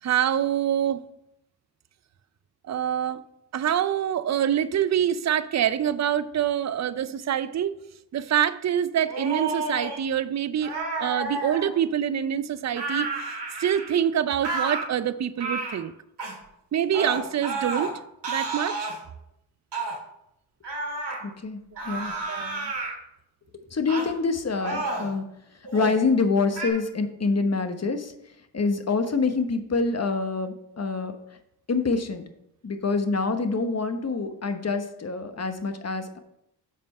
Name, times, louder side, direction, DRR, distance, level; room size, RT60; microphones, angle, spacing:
voice 1, 0.0-1.0 2.7-3.2 3.5-7.7 8.1-13.1 13.6-15.9 16.7-17.9 18.3-18.9 22.3-22.7, right 9 dB, 40° right, 15 dB, 0.5 m, -25 dB
sound 1, 9.0-10.0 10.6-11.7 12.7-14.0 14.4-14.8 15.4-15.8 16.2-16.4 16.9-17.9 18.2-19.0 19.7-20.0 20.6-21.2 21.8-22.9 23.9-24.1 24.6-25.1 25.6-26.0 26.5-26.7, right 3 dB, 70° right, 2.3 m, -30 dB
voice 2, 21.2-21.6 21.8-22.1 23.7-25.3 25.7-28.1 28.5-31.1 31.7-32.2 32.6-36.2, left 4 dB, 35° left, 7 dB, 1.1 m, -26 dB
7.4 x 4.4 x 5.6 m, 0.81 s
supercardioid pair, 40°, 43 cm